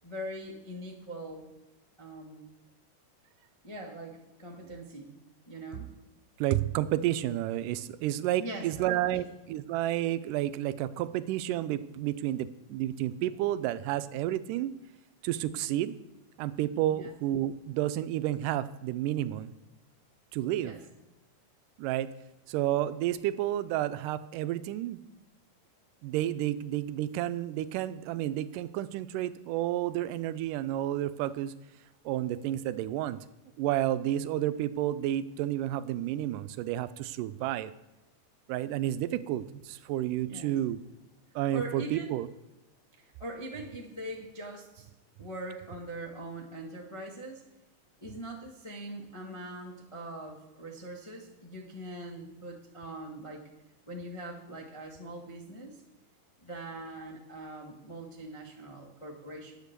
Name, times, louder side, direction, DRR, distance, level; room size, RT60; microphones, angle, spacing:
voice 1, 0.0-1.5 2.0-2.5 3.6-5.1 5.5-5.9 8.4-9.2 16.9-17.1 20.6-20.8 40.2-40.6 41.5-42.2 43.0-44.9 45.2-47.4 48.0-53.5 53.9-55.8 56.4-59.6, right 1 dB, 55° left, -2 dB, 0.3 m, -42 dB
voice 2, 6.4-14.7 15.2-16.0 16.4-19.5 20.3-20.7 21.8-22.1 22.5-25.0 26.0-31.5 32.1-33.2 33.6-37.7 38.5-40.8 41.4-42.3, right 13 dB, 85° right, 15 dB, 2.1 m, -31 dB
10.5 x 8.0 x 6.7 m, 1.0 s
omnidirectional pair, 3.8 m